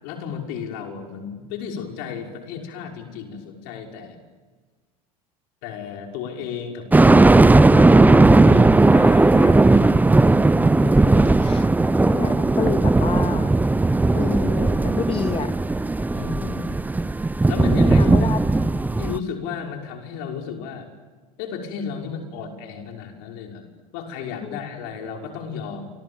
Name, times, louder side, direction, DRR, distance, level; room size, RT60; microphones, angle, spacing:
voice 1, 0.0-4.2 5.6-7.9 8.3-10.0 16.1-16.6 17.5-18.3 19.0-20.9 21.4-23.6 23.9-25.9, left 6 dB, 65° left, 2 dB, 5.9 m, -33 dB
sound 1, 6.9-19.2, right 2 dB, 10° right, 0.8 m, -16 dB
voice 2, 10.8-11.7 12.0-13.6 14.1-15.5 16.4-16.8 18.0-18.4 24.4-24.6, left 6 dB, 30° left, 7 dB, 2.9 m, -29 dB
29.0 x 26.5 x 7.3 m, 1.4 s
hypercardioid pair, 75°, 18 cm